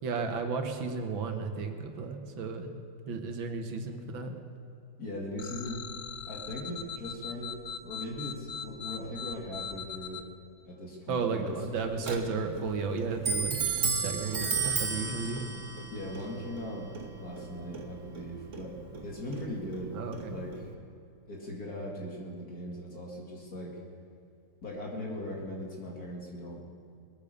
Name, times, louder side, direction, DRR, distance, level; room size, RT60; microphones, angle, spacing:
voice 1, 0.0-2.7 3.1-4.3 11.1-13.6 13.9-15.4 19.9-20.4, right 4 dB, 80° right, 5 dB, 2.0 m, -33 dB
voice 2, 5.0-5.8 6.3-7.6 7.8-10.2 10.6-11.6 15.1-15.2 15.9-16.9 17.2-20.0 20.2-20.7 21.3-23.8 24.6-26.6, left 1 dB, 50° left, -2 dB, 2.7 m, -39 dB
sound 1, 5.4-10.2, left 8 dB, 70° left, 0.6 m, -40 dB
Clock, 11.5-20.7, right 5 dB, 45° right, 1.4 m, -35 dB
21.0 x 8.6 x 6.7 m, 2.5 s
omnidirectional pair, 2.1 m